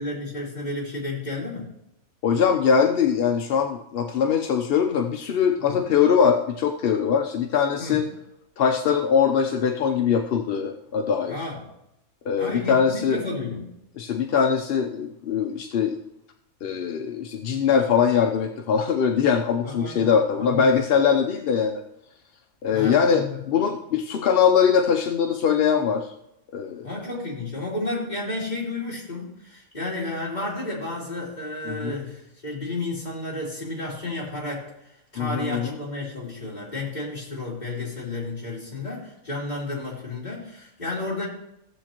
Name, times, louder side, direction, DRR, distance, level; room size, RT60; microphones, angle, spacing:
voice 1, 0.0-1.7 5.6-5.8 7.8-8.0 11.3-11.6 12.4-13.7 19.6-20.8 22.7-23.4 26.8-34.7 35.1-41.3, left 2 dB, 30° left, -6 dB, 3.3 m, -32 dB
voice 2, 2.2-8.1 8.6-11.5 12.3-13.2 14.0-16.0 16.6-21.8 22.6-26.1 26.5-26.9 31.7-32.0 35.2-35.8, left 7 dB, 55° left, 4 dB, 0.7 m, -22 dB
16.0 x 7.4 x 2.9 m, 0.83 s
omnidirectional pair, 1.4 m